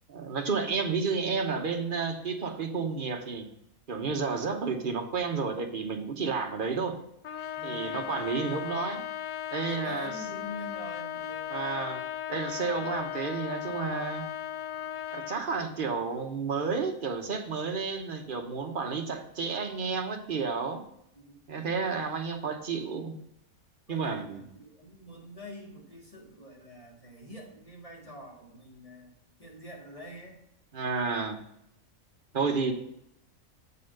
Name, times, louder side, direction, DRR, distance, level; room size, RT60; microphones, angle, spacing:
voice 1, 0.1-3.5 3.9-7.0 7.6-9.0 9.5-10.1 11.5-12.0 12.3-14.2 15.1-20.9 21.5-23.1 23.9-24.4 30.7-31.4 32.3-32.7, right 5 dB, 40° right, 4 dB, 1.0 m, -31 dB
Trumpet, 7.2-15.4, left 11 dB, 75° left, 0.9 m, -37 dB
voice 2, 7.6-8.1 9.7-11.6 21.1-21.4 23.9-29.1 29.4-30.4, equal, 25° left, -2 dB, 1.9 m, -46 dB
7.8 x 4.2 x 6.5 m, 0.75 s
omnidirectional pair, 1.5 m